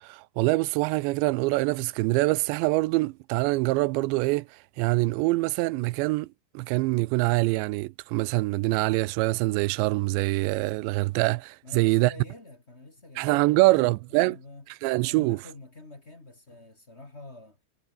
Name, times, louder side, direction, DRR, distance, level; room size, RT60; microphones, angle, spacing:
voice 1, 0.0-4.5 4.8-6.3 6.5-12.1 13.2-14.4 14.8-15.4, right 21 dB, 90° right, 3.0 m, -24 dB
voice 2, 11.6-14.7 15.1-17.6, left 2 dB, 20° left, 1.9 m, -47 dB
omnidirectional pair, 5.0 m